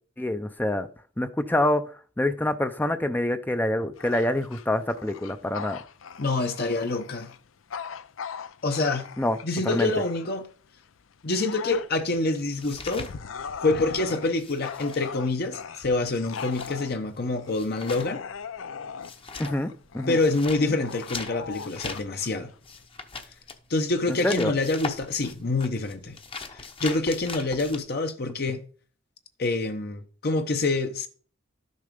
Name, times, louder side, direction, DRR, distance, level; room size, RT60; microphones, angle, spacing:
voice 1, 0.2-0.9 1.2-1.8 2.2-5.8 9.2-9.4 9.6-9.9 19.4-19.7 19.9-20.2 24.2-24.5, left 1 dB, 10° left, 0.5 m, -26 dB
Bark / Growling, 3.9-10.5 11.0-22.9, left 6 dB, 85° left, 0.5 m, -40 dB
voice 2, 6.2-7.3 8.6-9.0 9.4-10.5 11.2-13.1 13.6-18.2 20.1-22.5 23.7-26.2 26.5-28.6 29.4-31.1, left 2 dB, 50° left, 0.8 m, -26 dB
sound 1, 11.7-13.9 14.1-27.8, left 4 dB, 30° left, 0.9 m, -41 dB
12.0 x 6.5 x 5.2 m
head